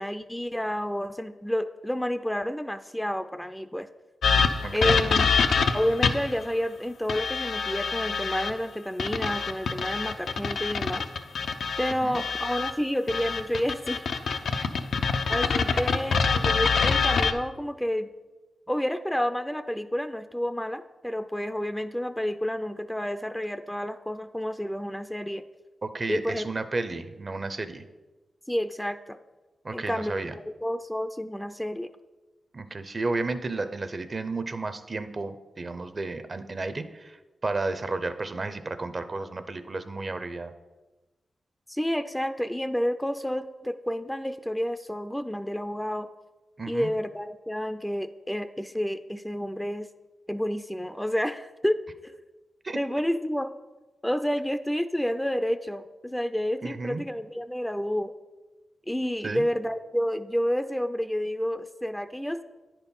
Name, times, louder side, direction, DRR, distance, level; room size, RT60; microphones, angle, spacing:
voice 1, 0.0-3.9 4.7-5.3 5.7-11.0 11.8-14.1 15.3-18.1 18.7-25.4 26.1-26.5 28.5-29.2 29.7-31.9 41.7-46.1 46.7-49.9 50.3-51.8 52.0-52.1 52.7-53.5 54.0-58.1 58.9-62.4, equal, 5° left, 10 dB, 0.4 m, -30 dB
sound 1, 4.2-6.4 7.1-8.5 9.0-12.7 13.1-17.3, left 5 dB, 80° left, 0.5 m, -25 dB
voice 2, 4.6-5.1 12.0-12.2 14.5-14.7 15.7-15.8 25.8-27.8 29.6-30.3 32.5-40.5 46.6-46.9 52.6-52.8 56.6-57.0 59.2-59.4, right 3 dB, 45° right, 10 dB, 0.6 m, -32 dB
9.7 x 4.4 x 5.4 m, 1.2 s
cardioid pair, 65°, 0 cm